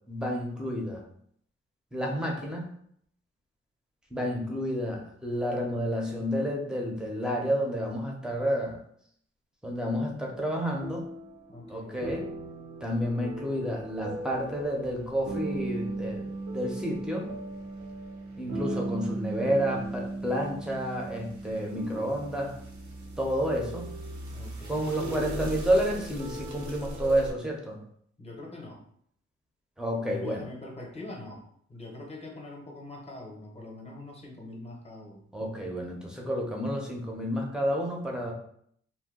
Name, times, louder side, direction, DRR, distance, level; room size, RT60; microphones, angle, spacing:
voice 1, 0.1-1.0 1.9-2.7 4.1-8.8 9.6-11.0 11.7-12.2 12.8-16.3 16.5-17.3 18.4-22.5 23.2-23.9 24.7-27.8 29.8-30.5 35.3-38.3, equal, 5° right, -1 dB, 0.7 m, -30 dB
sound 1, 10.0-27.3, right 2 dB, 75° right, 0.7 m, -38 dB
voice 2, 11.5-12.1 24.3-25.6 28.2-28.8 30.1-31.4 31.7-35.3, left 2 dB, 20° left, -1 dB, 0.9 m, -43 dB
2.7 x 2.2 x 3.7 m, 0.67 s
cardioid pair, 95°, 29 cm